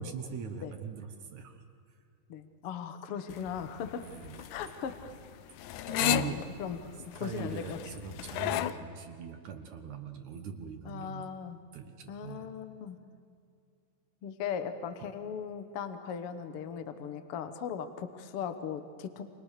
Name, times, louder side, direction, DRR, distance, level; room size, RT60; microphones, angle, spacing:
voice 1, 0.0-1.6 4.0-4.5 5.8-6.4 7.2-11.3 11.7-12.5 15.0-15.1, right 7 dB, 70° right, 5 dB, 2.7 m, -41 dB
voice 2, 2.3-4.1 4.5-5.1 6.1-7.8 10.9-11.6 12.1-13.0 14.2-19.2, left 7 dB, 55° left, 9 dB, 1.8 m, -38 dB
sound 1, 3.3-8.7, left 12 dB, 75° left, 2.2 m, -34 dB
29.0 x 25.5 x 6.7 m, 2.4 s
omnidirectional pair, 3.7 m